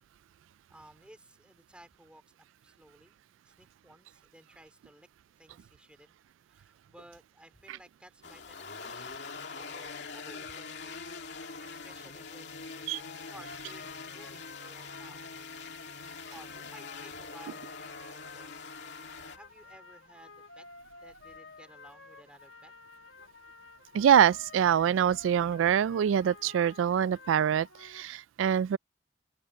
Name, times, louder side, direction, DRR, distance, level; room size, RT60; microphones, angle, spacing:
voice 1, 0.7-3.2 3.4-5.1 5.4-6.1 6.5-15.2 16.3-18.6 19.3-20.7 21.0-22.7, right 1 dB, 5° right, 4.1 m, -56 dB
sound 1, 8.2-19.4, left 4 dB, 65° left, 2.6 m, -44 dB
sound 2, 12.9-28.0, left 4 dB, 80° left, 2.1 m, -52 dB
voice 2, 23.9-28.8, right 9 dB, 85° right, 0.3 m, -25 dB
head